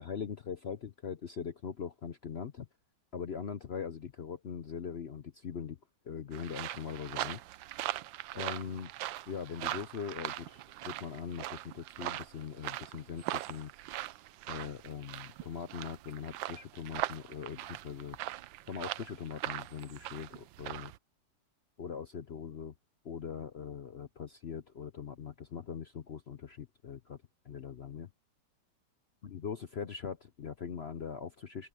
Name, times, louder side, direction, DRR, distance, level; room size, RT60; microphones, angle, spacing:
voice 1, 0.0-2.7 3.1-5.8 6.0-7.4 8.3-8.9 9.3-13.7 14.5-18.2 18.7-20.9 21.8-22.7 23.0-27.2 27.4-28.1 29.2-31.7, left 7 dB, 55° left, 0.7 m, -41 dB
sound 1, 6.3-21.0, right 14 dB, 85° right, 1.4 m, -41 dB
open air
omnidirectional pair, 2.0 m